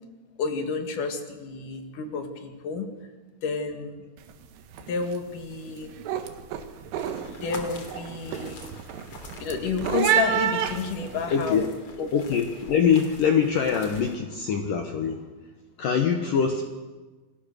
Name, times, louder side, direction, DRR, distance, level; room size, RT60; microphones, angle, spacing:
voice 1, 0.4-2.9 3.4-3.9 4.9-5.9 7.4-8.7 9.4-11.7 12.0-12.1 16.2-16.3, left 5 dB, 50° left, 6 dB, 3.0 m, -30 dB
sound 1, 4.2-4.5 4.7-5.2 5.6-11.5, right 9 dB, 85° right, 4.1 m, -29 dB
sound 2, 7.0-14.2, left 3 dB, 35° left, 2.9 m, -45 dB
voice 2, 11.3-11.7 12.1-15.3 15.8-16.7, left 7 dB, 70° left, 5 dB, 2.1 m, -23 dB
28.5 x 21.0 x 6.7 m, 1.3 s
omnidirectional pair, 5.6 m